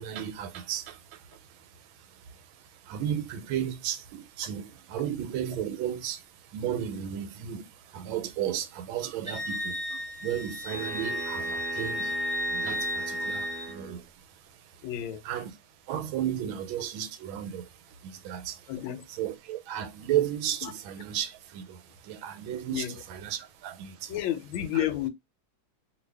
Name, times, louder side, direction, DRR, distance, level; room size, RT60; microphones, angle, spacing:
voice 1, 0.0-14.8 15.2-15.5 15.9-18.7 19.2-24.1 24.7-24.8, right 10 dB, 90° right, 1.4 m, -34 dB
Wind instrument woodwind instrument, 9.3-13.7, left 1 dB, 55° left, 0.9 m, -33 dB
sound 1, 10.7-14.0, right 5 dB, 70° right, 0.8 m, -40 dB
voice 2, 14.8-15.4 18.7-19.1 20.6-20.7 22.7-23.0 24.1-25.1, left 12 dB, 85° left, 1.4 m, -31 dB
2.8 x 2.6 x 3.2 m
omnidirectional pair, 2.1 m